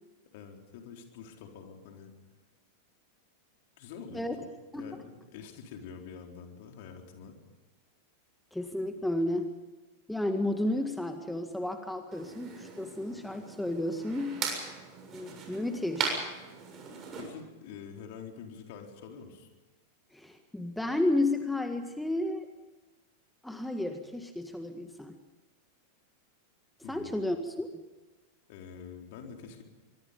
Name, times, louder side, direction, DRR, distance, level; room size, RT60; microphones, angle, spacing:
voice 1, 0.3-2.1 3.8-4.3 4.7-7.4 17.2-19.5 26.8-27.1 28.5-29.6, left 6 dB, 50° left, 3 dB, 4.1 m, -46 dB
voice 2, 8.5-9.5 10.1-14.4 15.1-16.3 20.1-22.5 23.4-25.2 26.9-27.7, left 1 dB, 5° left, 6 dB, 1.8 m, -32 dB
sound 1, 12.1-17.3, right 5 dB, 30° right, 6.9 m, -38 dB
24.5 x 24.0 x 5.4 m, 1.2 s
figure-of-eight pair, 90°, 0 cm